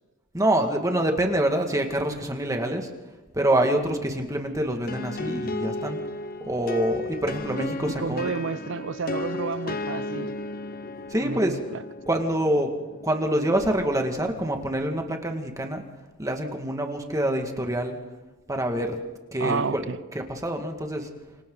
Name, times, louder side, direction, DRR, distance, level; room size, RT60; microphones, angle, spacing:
voice 1, 0.3-2.9 3.3-6.0 6.4-8.3 11.1-11.6 12.1-12.7 13.0-15.8 16.2-18.0 18.5-19.0 19.3-19.8 20.1-21.1, right 1 dB, 15° right, 2.0 m, -26 dB
sound 1, 4.9-14.5, left 2 dB, 50° left, 1.0 m, -35 dB
voice 2, 7.9-10.4 11.2-11.8 19.4-20.0, right 5 dB, 65° right, 0.6 m, -30 dB
28.5 x 25.5 x 4.0 m
head